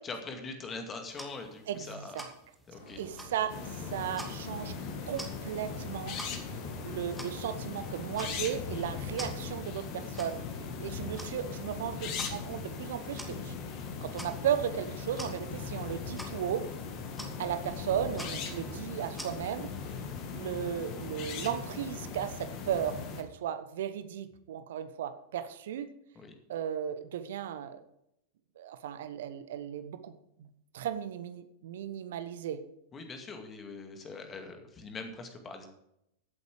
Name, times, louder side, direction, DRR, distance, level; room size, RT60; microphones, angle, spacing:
voice 1, 0.0-2.2 2.7-3.0 26.2-26.3 32.9-35.7, left 3 dB, 25° left, 5 dB, 2.3 m, -42 dB
sound 1, 1.1-19.9, equal, ahead, 2.4 m, -50 dB
voice 2, 1.7-2.3 3.0-4.7 5.1-6.2 6.8-10.4 10.8-13.5 14.0-16.7 17.4-19.7 20.3-25.9 26.5-27.8 28.6-30.5 30.7-32.6, right 9 dB, 60° right, 11 dB, 1.0 m, -35 dB
sound 2, 2.7-8.7, left 1 dB, 70° left, 4.1 m, -49 dB
sound 3, 3.5-23.2, left 5 dB, 40° left, 2.0 m, -39 dB
15.5 x 8.3 x 5.0 m, 0.79 s
figure-of-eight pair, 90°, 0 cm